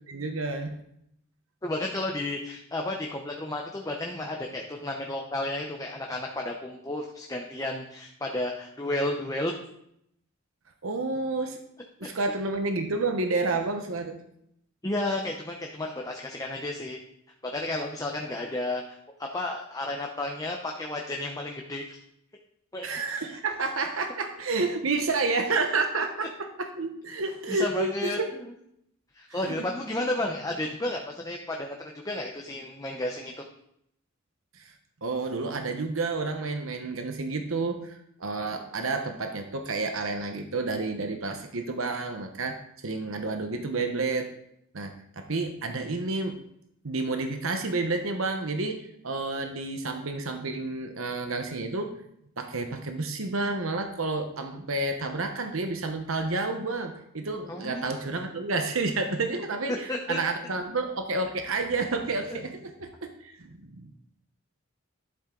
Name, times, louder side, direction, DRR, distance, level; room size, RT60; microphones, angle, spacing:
voice 1, 0.1-0.8 10.8-11.6 12.0-14.2 22.8-28.2 29.4-29.5 34.5-34.7 35.0-44.3 44.7-46.4 46.8-51.9 52.4-63.9, right 3 dB, 80° right, 5 dB, 1.1 m, -30 dB
voice 2, 1.6-9.5 14.8-17.0 17.4-22.0 22.7-22.9 27.5-28.5 29.1-33.3 57.5-58.0 59.9-60.2 62.3-62.4, left 1 dB, 15° left, 1 dB, 0.8 m, -32 dB
11.5 x 7.4 x 3.9 m, 0.74 s
head